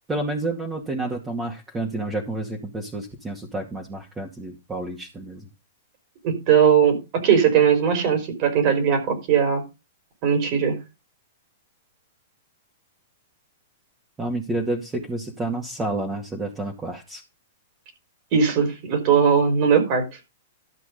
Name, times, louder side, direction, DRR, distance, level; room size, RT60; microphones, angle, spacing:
voice 1, 0.1-5.5 14.2-17.2, right 2 dB, 15° right, 0 dB, 2.3 m, -29 dB
voice 2, 6.2-9.6 10.2-10.8 18.3-20.1, right 7 dB, 45° right, 7 dB, 4.7 m, -19 dB
12.5 x 5.9 x 5.3 m, 0.26 s
hypercardioid pair, 120°, 0 cm